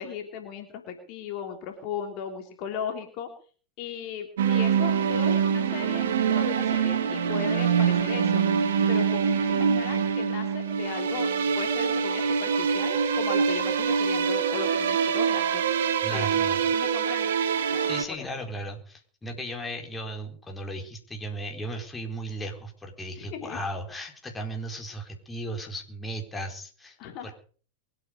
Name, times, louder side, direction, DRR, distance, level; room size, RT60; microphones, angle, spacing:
voice 1, 0.0-3.3 3.8-8.4 8.9-11.3 11.6-15.7 16.1-17.3 17.7-18.3 23.1-23.6 27.0-27.3, left 7 dB, 45° left, 4 dB, 3.2 m, -37 dB
sound 1, 4.4-18.0, right 7 dB, 60° right, 1.9 m, -25 dB
voice 2, 16.0-16.6 17.9-27.0 27.2-27.3, right 1 dB, 10° left, 2 dB, 4.2 m, -36 dB
23.0 x 9.3 x 6.5 m, 0.43 s
figure-of-eight pair, 90°, 0 cm